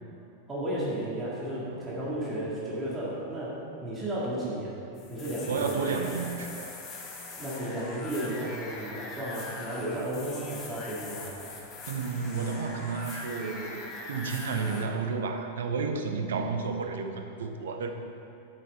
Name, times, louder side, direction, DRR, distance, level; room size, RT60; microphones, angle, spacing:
voice 1, 0.5-4.8 5.1-5.9 7.4-11.4, right 1 dB, 20° right, -7 dB, 2.0 m, -33 dB
sound 1, 5.0-14.8, left 3 dB, 35° left, 1.3 m, -42 dB
voice 2, 5.5-6.7 11.9-17.9, right 4 dB, 65° right, 5 dB, 0.7 m, -32 dB
8.7 x 7.8 x 4.1 m, 2.8 s
figure-of-eight pair, 90°, 0 cm